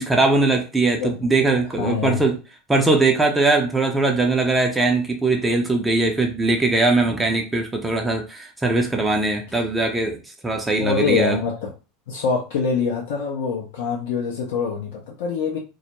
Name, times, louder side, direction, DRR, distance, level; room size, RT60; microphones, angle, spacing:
voice 1, 0.0-2.4 2.7-10.2 10.4-11.4, right 3 dB, 15° right, 1 dB, 0.5 m, -20 dB
voice 2, 1.8-2.2 9.5-9.6 10.8-11.7 12.1-15.6, left 5 dB, 65° left, -2 dB, 0.5 m, -24 dB
2.2 x 2.0 x 2.9 m, 0.32 s
figure-of-eight pair, 80°, 0 cm